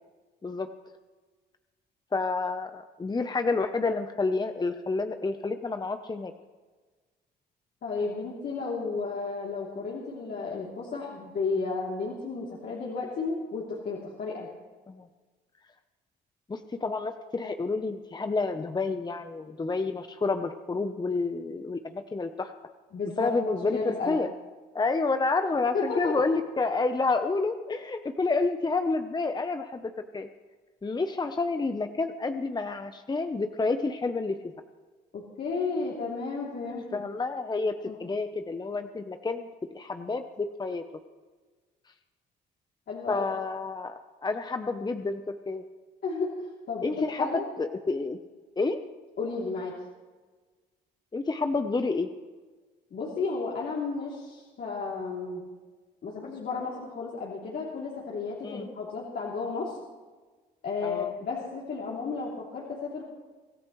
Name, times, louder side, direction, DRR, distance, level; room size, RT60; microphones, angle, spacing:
voice 1, 2.1-6.3 14.9-15.1 16.5-22.5 23.2-24.3 24.7-30.3 30.8-34.4 36.9-40.8 43.1-45.6 46.8-47.3 47.6-48.2 48.6-48.8 51.1-52.1 58.4-58.7 60.8-61.1, left 3 dB, 20° left, 7 dB, 0.9 m, -29 dB
voice 2, 7.8-14.5 22.9-24.2 25.7-26.2 35.1-37.0 37.8-38.0 42.9-43.2 46.0-46.3 46.7-47.4 49.2-49.8 52.9-55.4 56.0-59.8 60.6-63.0, left 4 dB, 55° left, -5 dB, 3.2 m, -33 dB
25.0 x 13.5 x 3.2 m, 1.3 s
supercardioid pair, 70°, 19 cm